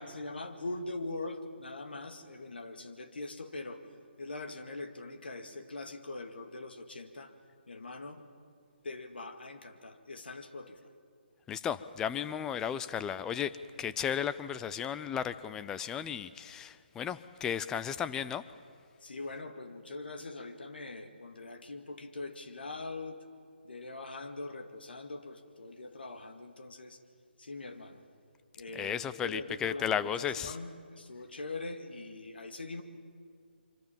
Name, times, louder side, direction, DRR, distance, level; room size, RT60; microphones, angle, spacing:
voice 1, 0.0-3.8 4.2-7.3 7.7-8.3 8.8-10.9 19.0-23.2 23.6-27.0 27.4-28.0 28.6-32.8, left 2 dB, 65° left, 7 dB, 2.2 m, -42 dB
voice 2, 11.5-13.5 13.8-18.4 28.7-30.6, left 8 dB, 10° left, 14 dB, 0.5 m, -34 dB
25.5 x 25.0 x 7.3 m, 2.3 s
figure-of-eight pair, 145°, 6 cm